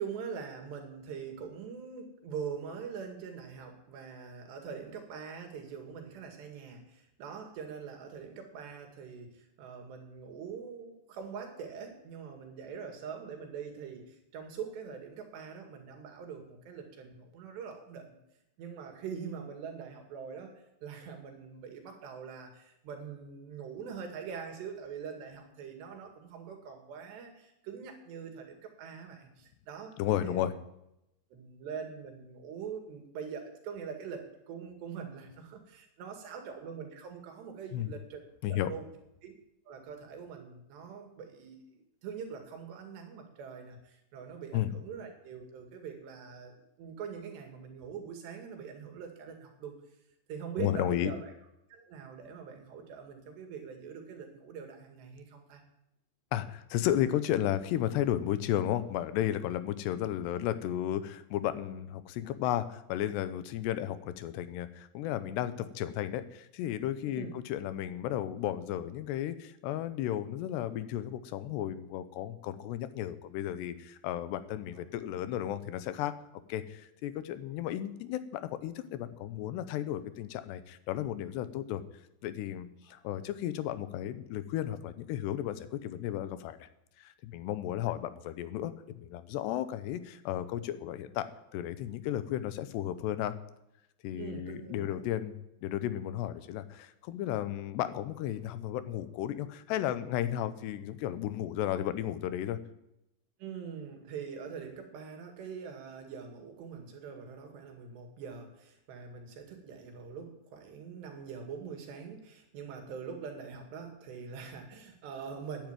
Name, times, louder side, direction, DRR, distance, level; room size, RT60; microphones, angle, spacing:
voice 1, 0.0-18.1 18.6-20.5 20.8-29.9 30.2-30.5 31.3-38.2 38.5-38.9 39.2-39.3 39.7-49.8 50.3-51.3 51.7-55.6 67.2-67.4 74.7-74.8 82.8-83.0 94.2-95.0 103.4-115.7, right 6 dB, 75° right, 5 dB, 4.4 m, -43 dB
voice 2, 30.0-30.5 37.7-37.9 38.4-38.7 44.5-44.7 50.6-51.1 56.3-76.1 76.5-81.8 82.2-86.7 87.0-93.3 94.0-102.6, left 12 dB, 80° left, 12 dB, 3.0 m, -34 dB
12.5 x 10.5 x 9.1 m, 0.86 s
omnidirectional pair, 4.9 m